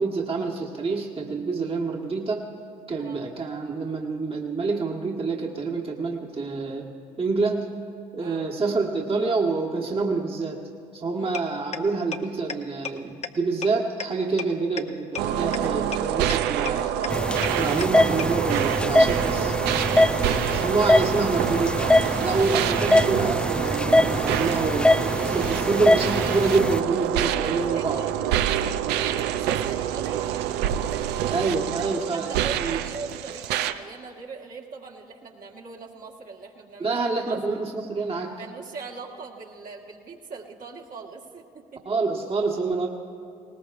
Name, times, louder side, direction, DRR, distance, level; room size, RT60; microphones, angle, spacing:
voice 1, 0.0-2.5 2.9-6.9 7.2-7.7 8.1-10.6 10.9-16.9 17.6-19.6 20.5-21.9 22.2-28.0 31.3-32.8 36.8-38.3 41.8-42.9, right 4 dB, 30° right, 0 dB, 1.4 m, -27 dB
sound 1, 11.3-11.4 11.7-11.8 12.1-12.2 12.5-12.6 12.8-12.9 13.2-13.3 13.6-13.7 14.0-14.1 14.4-14.5 14.8-14.9 15.1-15.2 15.5-15.6 15.9-16.0 16.3-16.4 16.7-16.8 17.0-17.1 17.4-17.5 17.8-17.9 18.2-18.3, left 6 dB, 40° left, 0.8 m, -30 dB
sound 2, 15.2-33.7, right 11 dB, 70° right, 0.5 m, -26 dB
sound 3, 17.1-26.8, left 1 dB, 5° left, 0.3 m, -23 dB
voice 2, 17.2-17.6 19.8-20.2 27.5-37.4 38.4-41.8, right 4 dB, 50° right, -2 dB, 1.6 m, -41 dB
19.5 x 19.0 x 2.5 m, 2.4 s
hypercardioid pair, 55°, 18 cm